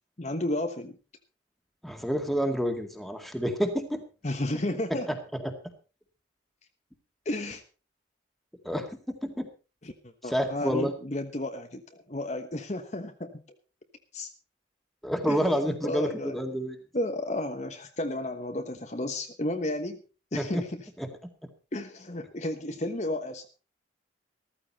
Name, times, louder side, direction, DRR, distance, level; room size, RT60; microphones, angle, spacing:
voice 1, 0.2-1.0 4.2-5.1 7.2-7.6 9.8-9.9 10.2-13.3 14.1-14.3 15.3-15.4 15.8-16.4 16.9-20.0 20.3-20.8 21.7-23.5, left 1 dB, 35° left, 6 dB, 1.2 m, -32 dB
voice 2, 1.8-4.0 5.1-5.5 8.6-9.5 10.2-10.9 15.0-16.8 20.4-20.6 21.0-21.1, equal, ahead, 5 dB, 2.0 m, -29 dB
14.5 x 14.5 x 4.2 m, 0.34 s
head